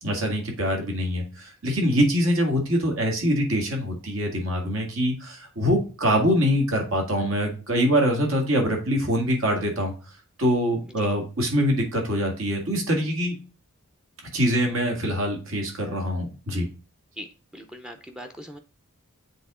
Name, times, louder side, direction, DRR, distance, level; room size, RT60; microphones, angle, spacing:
voice 1, 0.0-9.9 10.4-13.4 14.3-16.7, equal, 70° right, 2 dB, 1.9 m, -24 dB
voice 2, 17.5-18.6, equal, 5° right, 5 dB, 0.5 m, -40 dB
7.7 x 3.6 x 3.7 m, 0.35 s
head